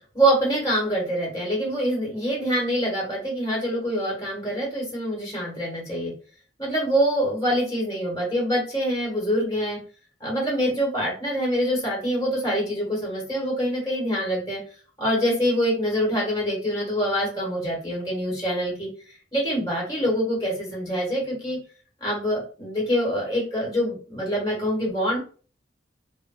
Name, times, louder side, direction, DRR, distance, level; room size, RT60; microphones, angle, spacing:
voice 1, 0.1-6.1 6.6-9.8 10.2-14.6 15.0-18.9 19.3-21.6 22.0-25.2, equal, 20° left, -4 dB, 1.7 m, -25 dB
3.3 x 2.5 x 3.9 m, 0.39 s
head